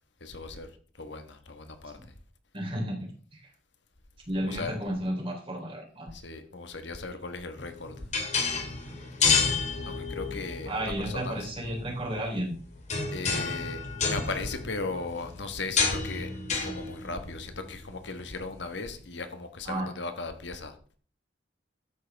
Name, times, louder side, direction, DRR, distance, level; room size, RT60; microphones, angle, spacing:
voice 1, 0.2-0.7 1.0-2.0 4.4-4.8 6.1-8.1 9.9-11.5 13.1-13.8 14.1-20.7, left 3 dB, 65° left, 1.4 m, -37 dB
voice 2, 2.5-3.0 3.3-3.4 4.3-6.1 10.7-12.5 19.7-19.9, right 1 dB, 30° right, 3.6 m, -32 dB
sound 1, 7.6-19.0, left 5 dB, 40° left, 2.3 m, -31 dB
12.5 x 9.0 x 3.5 m
head